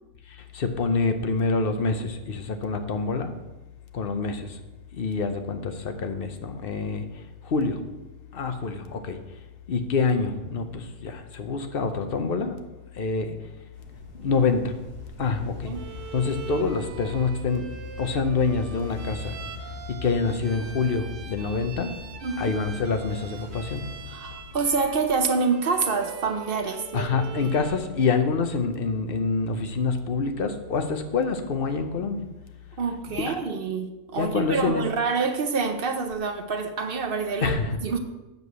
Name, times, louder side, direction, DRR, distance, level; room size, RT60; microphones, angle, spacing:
voice 1, 0.4-3.3 3.9-4.6 4.9-7.1 7.4-7.8 8.3-9.2 9.7-12.6 13.0-13.3 14.1-14.7 15.2-15.7 16.1-17.7 18.0-19.4 19.9-22.0 22.4-23.9 26.9-32.2 33.1-33.3 34.2-34.8 37.4-37.8, left 4 dB, 50° left, 7 dB, 0.9 m, -26 dB
sound 1, 13.7-25.3, left 3 dB, 70° left, 3.4 m, -42 dB
Bowed string instrument, 15.7-27.9, right 6 dB, 85° right, 1.2 m, -43 dB
voice 2, 22.2-22.5 24.1-27.5 32.8-37.6 37.8-38.0, right 5 dB, 55° right, 7 dB, 0.8 m, -27 dB
8.1 x 4.8 x 6.7 m, 1.0 s
omnidirectional pair, 1.3 m